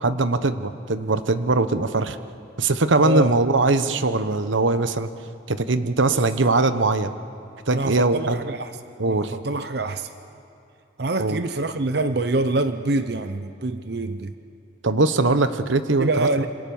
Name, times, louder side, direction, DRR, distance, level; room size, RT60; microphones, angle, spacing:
voice 1, 0.0-2.2 2.6-5.1 5.5-7.1 7.7-8.4 9.0-9.3 11.2-11.4 14.8-16.5, right 3 dB, 80° right, 11 dB, 1.0 m, -21 dB
voice 2, 3.0-3.4 6.1-6.2 7.7-8.7 9.0-10.1 11.0-14.3 16.0-16.5, right 2 dB, 55° right, 10 dB, 0.7 m, -25 dB
27.0 x 26.0 x 7.1 m, 2.7 s
head